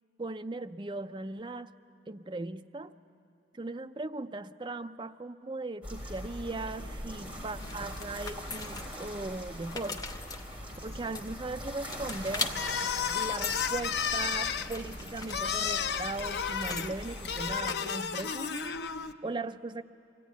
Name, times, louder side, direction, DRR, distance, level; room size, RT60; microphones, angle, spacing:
voice 1, 0.2-1.8 2.1-2.9 3.5-10.1 10.8-12.5 13.1-18.5 19.2-19.8, right 2 dB, 25° right, 8 dB, 0.5 m, -38 dB
sound 1, 5.8-17.6, equal, 10° right, 3.5 m, -42 dB
sound 2, 7.6-9.2 9.5-11.5 11.9-12.5 13.0-13.7 14.0-16.9 17.6-18.3, left 4 dB, 20° left, 0.7 m, -40 dB
sound 3, 12.5-19.1, left 7 dB, 60° left, 0.6 m, -33 dB
23.5 x 16.0 x 9.4 m, 2.6 s
head